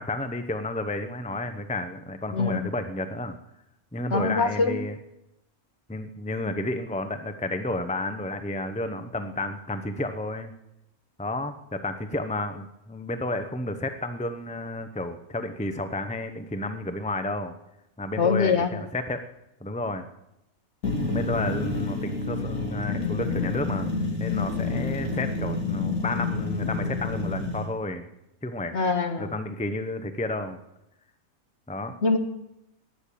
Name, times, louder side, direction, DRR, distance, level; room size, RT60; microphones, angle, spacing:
voice 1, 0.0-3.4 3.9-5.0 5.9-10.5 11.2-17.5 18.0-19.2 19.6-20.0 21.1-23.9 24.2-28.0 28.4-28.7 29.2-30.6 31.7-31.9, left 2 dB, 5° left, 8 dB, 0.7 m, -31 dB
voice 2, 4.1-4.8 18.2-18.7 28.7-29.3 32.0-32.2, left 4 dB, 50° left, 6 dB, 1.7 m, -23 dB
sound 1, 20.8-27.6, left 4 dB, 75° left, 3.3 m, -29 dB
19.0 x 7.4 x 8.5 m, 0.87 s
omnidirectional pair, 1.5 m